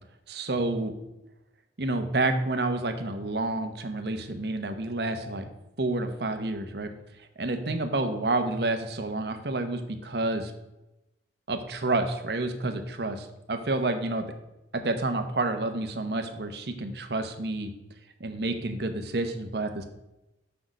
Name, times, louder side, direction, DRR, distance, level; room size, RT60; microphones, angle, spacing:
voice 1, 0.3-0.9 1.8-5.5 5.8-6.9 7.4-10.5 11.5-14.2 14.7-17.7 18.2-19.9, right 2 dB, 65° right, 7 dB, 0.9 m, -29 dB
6.3 x 5.8 x 6.5 m, 0.94 s
head